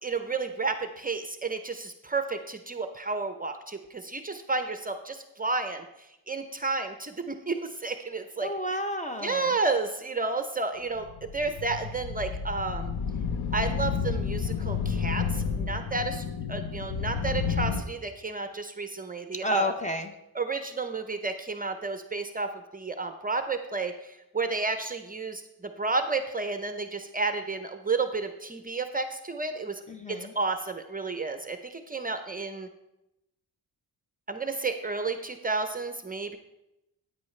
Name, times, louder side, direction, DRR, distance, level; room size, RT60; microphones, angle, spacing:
voice 1, 0.0-5.8 6.3-8.5 9.2-12.9 13.5-19.7 20.3-25.4 25.8-29.8 30.1-32.7 34.3-36.4, right 3 dB, 20° right, 7 dB, 0.6 m, -31 dB
voice 2, 8.4-9.6 19.4-20.1 29.9-30.3, left 1 dB, 20° left, 7 dB, 0.7 m, -30 dB
sound 1, 11.0-17.8, left 6 dB, 70° left, 0.9 m, -31 dB
13.5 x 9.3 x 3.2 m, 0.92 s
wide cardioid pair, 125°, 39 cm